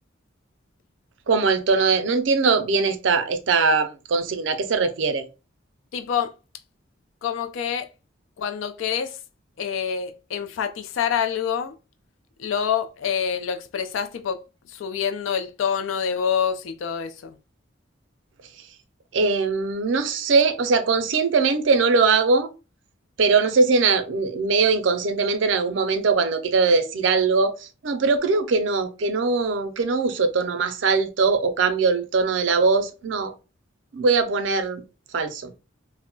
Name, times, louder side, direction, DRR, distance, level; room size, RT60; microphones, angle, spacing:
voice 1, 1.3-5.2 19.1-22.5 23.2-27.5 27.8-33.3 33.9-34.8 35.1-35.5, right 4 dB, 75° right, 0.5 m, -21 dB
voice 2, 5.9-6.3 7.2-7.9 8.4-9.2 9.6-11.8 12.4-14.4 14.7-17.4, left 7 dB, 90° left, 0.4 m, -26 dB
2.2 x 2.0 x 3.7 m
head